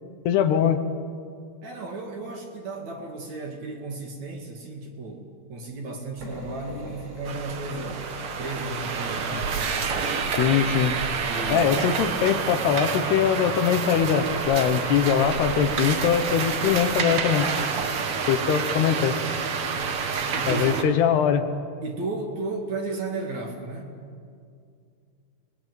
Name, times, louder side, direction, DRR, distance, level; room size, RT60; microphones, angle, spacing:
voice 1, 0.3-0.8 10.4-11.0 11.5-17.5 18.3-19.2 20.5-21.4, left 8 dB, 75° left, 9 dB, 3.1 m, -22 dB
voice 2, 1.6-8.0 8.4-9.8 11.3-11.7 20.3-20.9 21.8-23.9, right 3 dB, 50° right, 2 dB, 3.2 m, -34 dB
sound 1, 6.2-12.5, right 2 dB, 85° right, 6.6 m, -41 dB
sound 2, 7.3-20.8, right 5 dB, 65° right, 1.3 m, -28 dB
28.5 x 21.0 x 9.2 m, 2.4 s
omnidirectional pair, 4.8 m